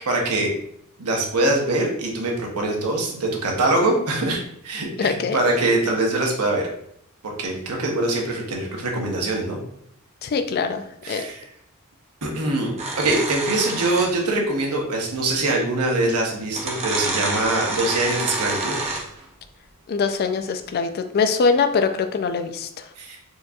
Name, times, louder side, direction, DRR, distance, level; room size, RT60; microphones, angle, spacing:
voice 1, 0.1-0.5 1.0-6.7 7.2-9.6 11.0-11.4 12.2-18.8 23.0-23.2, right 2 dB, 90° right, 0 dB, 0.9 m, -23 dB
voice 2, 5.0-5.4 10.2-11.2 19.9-22.9, left 5 dB, 45° left, 8 dB, 0.3 m, -23 dB
sound 1, 12.8-14.3 15.6-15.7 16.5-19.2, right 2 dB, 30° right, 0.6 m, -28 dB
4.4 x 2.7 x 2.4 m, 0.71 s
head